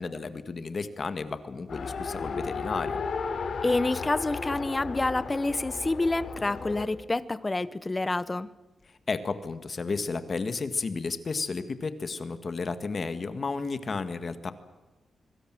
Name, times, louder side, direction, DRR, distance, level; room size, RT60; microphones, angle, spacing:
voice 1, 0.0-3.0 8.9-14.5, left 4 dB, 40° left, 10 dB, 1.8 m, -33 dB
Race car auto racing, 1.7-6.9, left 5 dB, 55° left, 3.8 m, -34 dB
voice 2, 3.6-8.5, left 2 dB, 20° left, 16 dB, 0.9 m, -28 dB
25.5 x 23.5 x 7.7 m, 1.1 s
wide cardioid pair, 140°, 0 cm